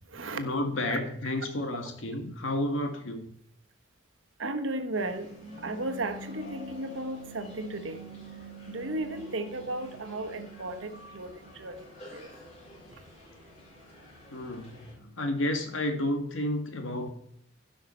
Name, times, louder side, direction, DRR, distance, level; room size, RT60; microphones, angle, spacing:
voice 1, 0.3-3.3 14.3-17.1, left 1 dB, 80° left, 4 dB, 1.8 m, -31 dB
voice 2, 4.4-11.3 11.6-11.7 12.1-12.2, right 2 dB, 80° right, 7 dB, 1.2 m, -35 dB
sound 1, 4.9-14.9, left 1 dB, 35° left, 4.7 m, -51 dB
15.0 x 5.9 x 4.4 m, 0.71 s
head